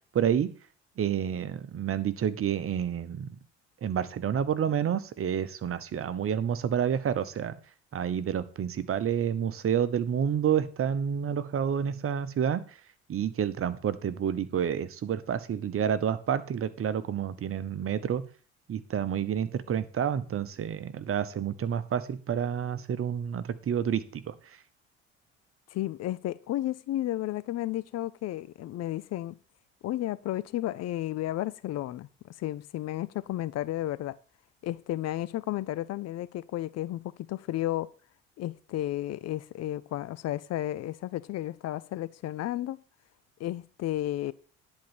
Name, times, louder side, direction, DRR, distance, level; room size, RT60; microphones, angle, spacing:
voice 1, 0.1-0.5 1.0-3.4 3.8-7.5 7.9-12.6 13.1-18.2 18.7-24.3, right 8 dB, 40° right, 1.0 m, -29 dB
voice 2, 25.7-29.4 29.8-34.2 34.6-37.9 38.4-42.8 43.4-44.3, left 14 dB, 50° left, 0.6 m, -33 dB
10.5 x 4.5 x 7.1 m
hypercardioid pair, 60°, 32 cm